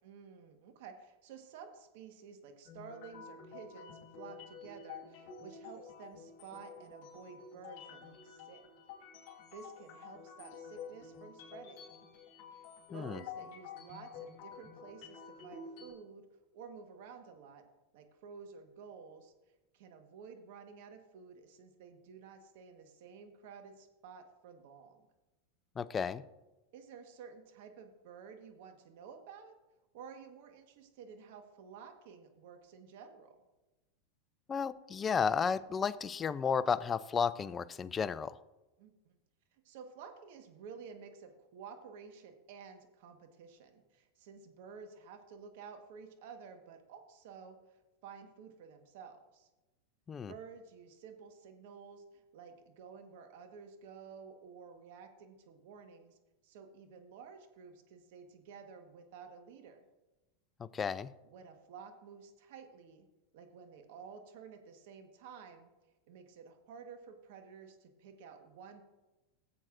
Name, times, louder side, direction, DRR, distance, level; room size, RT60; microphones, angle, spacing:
voice 1, 0.0-8.6 9.5-11.8 12.5-16.2 16.5-17.6 17.9-19.3 19.7-25.0 26.7-29.5 29.9-33.3 38.8-39.2 39.5-49.5 50.3-56.2 56.4-59.8 61.2-63.0 63.3-65.7 66.1-68.8, right 6 dB, 65° right, 6 dB, 1.3 m, -52 dB
sound 1, 2.6-15.9, left 6 dB, 60° left, 2.3 m, -50 dB
voice 2, 12.9-13.2 25.8-26.2 34.5-38.4 50.1-50.3 60.6-61.1, left 6 dB, 25° left, 15 dB, 0.4 m, -33 dB
16.0 x 7.7 x 2.6 m, 1.1 s
hypercardioid pair, 115°, 0 cm